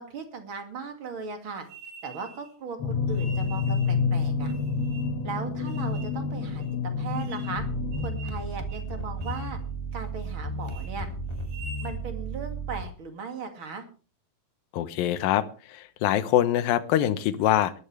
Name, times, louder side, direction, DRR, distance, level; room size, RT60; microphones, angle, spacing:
voice 1, 0.0-1.7 2.0-4.5 5.2-6.6 7.0-7.6 8.0-9.6 9.9-11.1 11.8-13.8, right 5 dB, 40° right, 6 dB, 2.5 m, -37 dB
sound 1, 1.7-2.5 3.1-4.0 4.4-5.2 5.7-6.2 6.6-6.7 7.2-7.6 7.9-8.4 8.7-8.9 9.2-9.5 9.9-10.3 10.6-10.9 11.4-12.0, right 3 dB, 85° right, 7.4 m, -46 dB
sound 2, 2.8-8.1, left 5 dB, 50° left, 2.1 m, -28 dB
sound 3, 7.6-12.8, right 2 dB, 25° left, 0.6 m, -34 dB
voice 2, 14.7-17.7, left 12 dB, 75° left, 12 dB, 2.6 m, -24 dB
20.5 x 13.0 x 3.3 m, 0.36 s
omnidirectional pair, 4.4 m